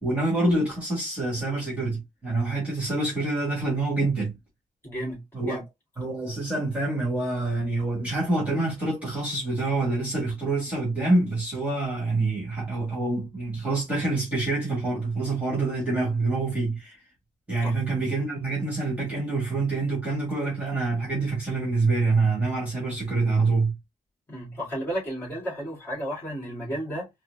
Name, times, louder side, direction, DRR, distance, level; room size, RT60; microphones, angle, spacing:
voice 1, 0.0-4.4 5.3-5.6 6.0-17.0 17.5-23.8, right 2 dB, 10° right, 1.8 m, -26 dB
voice 2, 4.8-5.6 17.6-17.7 24.3-27.1, equal, 15° left, 2.0 m, -33 dB
4.2 x 2.1 x 2.7 m
wide cardioid pair, 180°, 16 cm